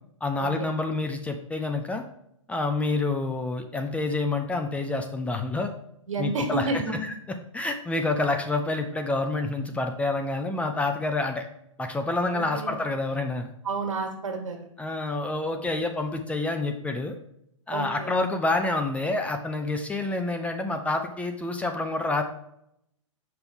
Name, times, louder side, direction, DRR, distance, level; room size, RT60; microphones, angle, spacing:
voice 1, 0.2-2.0 2.5-5.7 6.2-6.8 7.5-11.5 11.8-13.5 14.8-17.2 17.7-22.2, left 2 dB, 10° left, 5 dB, 0.5 m, -28 dB
voice 2, 6.1-7.0 12.3-12.8 13.6-14.7 17.7-18.1, right 3 dB, 70° right, 4 dB, 1.6 m, -30 dB
5.8 x 5.3 x 3.6 m, 0.75 s
hypercardioid pair, 125°, 17 cm